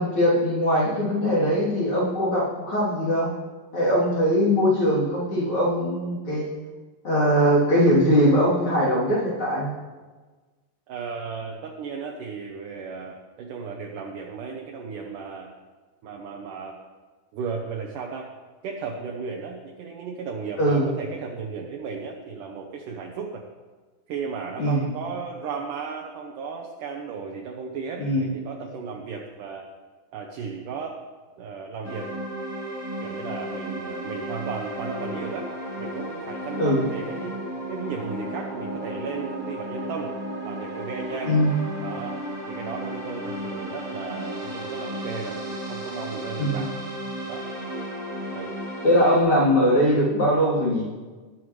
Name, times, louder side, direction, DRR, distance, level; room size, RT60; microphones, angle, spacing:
voice 1, 0.0-3.3 3.7-6.5 7.0-9.7 20.6-20.9 24.6-24.8 28.0-28.3 36.6-36.8 41.2-41.5 46.4-46.6 48.8-50.8, equal, 35° left, -7 dB, 3.6 m, -21 dB
voice 2, 10.9-15.5 16.0-16.8 17.3-18.3 18.6-23.4 24.1-29.7 30.1-31.0 31.4-32.1 33.0-37.4 37.7-40.1 40.4-41.4 41.8-46.7 47.2-47.5 48.3-48.6, right 5 dB, 75° right, 0 dB, 2.0 m, -35 dB
sound 1, 31.8-49.2, right 1 dB, 10° right, 1.7 m, -34 dB
20.5 x 8.9 x 3.3 m, 1.3 s
omnidirectional pair, 4.9 m